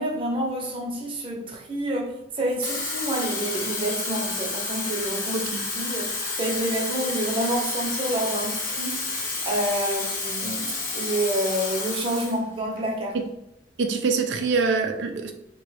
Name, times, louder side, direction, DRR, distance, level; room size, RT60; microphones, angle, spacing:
voice 1, 0.0-5.5 5.7-13.2, right 1 dB, 30° right, 0.7 m, -28 dB
Water tap faucet / Fill (with liquid), 2.5-12.4 12.8-13.0, left 3 dB, 50° left, 0.9 m, -30 dB
voice 2, 13.8-15.3, right 4 dB, 85° right, 0.4 m, -24 dB
3.8 x 2.2 x 3.2 m
head